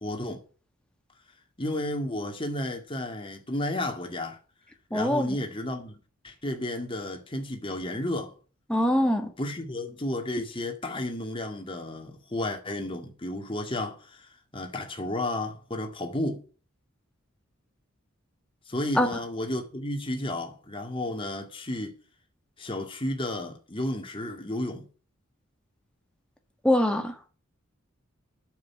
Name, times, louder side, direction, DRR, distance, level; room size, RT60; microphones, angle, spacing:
voice 1, 0.0-0.4 1.6-4.4 4.9-8.3 9.4-16.4 18.7-21.9 22.6-24.9, left 1 dB, 25° left, 2.1 m, -32 dB
voice 2, 4.9-5.4 8.7-9.3 19.0-19.1 26.6-27.2, left 1 dB, 5° left, 1.5 m, -23 dB
9.3 x 6.9 x 8.3 m
head